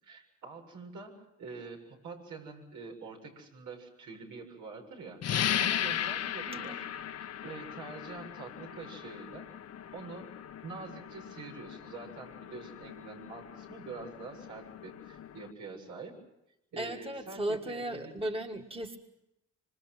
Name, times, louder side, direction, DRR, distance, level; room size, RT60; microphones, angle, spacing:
voice 1, 0.0-5.2 5.6-6.9 7.2-9.5 9.9-10.3 10.6-16.2 16.7-18.1, right 4 dB, 85° right, 1 dB, 7.4 m, -46 dB
sound 1, 5.2-15.5, left 10 dB, 55° left, 1.0 m, -37 dB
voice 2, 6.5-6.8 16.8-19.0, right 1 dB, 20° right, 4 dB, 1.8 m, -36 dB
26.5 x 25.5 x 6.1 m, 0.87 s
cardioid pair, 90°, 30 cm